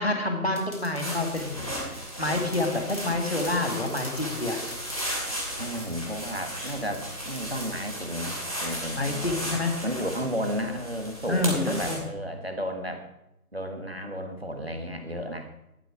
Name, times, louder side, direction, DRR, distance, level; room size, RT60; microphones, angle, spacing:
voice 1, 0.0-1.6 2.2-4.6 9.0-9.7 11.3-12.0, left 2 dB, 40° left, 3 dB, 2.0 m, -27 dB
sound 1, 0.5-8.0, left 1 dB, 60° left, 4.4 m, -47 dB
sound 2, 1.0-12.0, equal, 25° left, 2.6 m, -35 dB
voice 2, 1.5-2.0 5.6-13.0 13.5-15.5, equal, 40° right, 6 dB, 1.6 m, -33 dB
13.0 x 11.5 x 4.8 m, 0.87 s
figure-of-eight pair, 175°, 46 cm